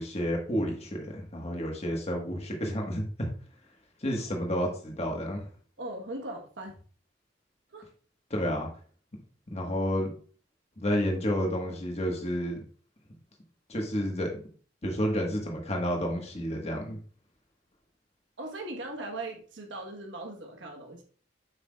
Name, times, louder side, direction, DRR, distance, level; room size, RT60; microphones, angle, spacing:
voice 1, 0.0-3.3 4.0-5.4 8.3-8.7 9.5-10.1 10.8-12.6 13.7-14.4 14.8-17.0, equal, 35° left, 1 dB, 1.4 m, -30 dB
voice 2, 5.8-6.7 7.7-7.9 18.4-21.0, right 2 dB, 80° right, 2 dB, 1.2 m, -39 dB
7.9 x 5.7 x 2.3 m, 0.43 s
head